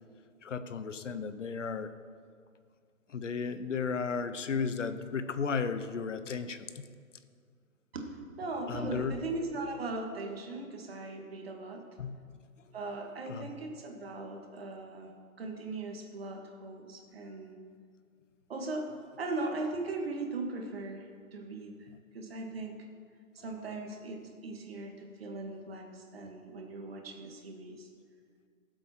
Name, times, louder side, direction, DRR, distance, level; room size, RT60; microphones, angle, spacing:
voice 1, 0.4-1.9 3.1-6.8 8.7-9.2 12.0-12.2 13.3-13.5, left 5 dB, 60° left, 11 dB, 0.9 m, -34 dB
voice 2, 7.9-11.8 12.7-15.1 15.4-17.6 18.5-18.9 19.2-21.9 22.1-22.8 23.4-27.9, right 2 dB, 45° right, 2 dB, 1.9 m, -39 dB
18.0 x 7.8 x 4.4 m, 2.1 s
hypercardioid pair, 170°, 42 cm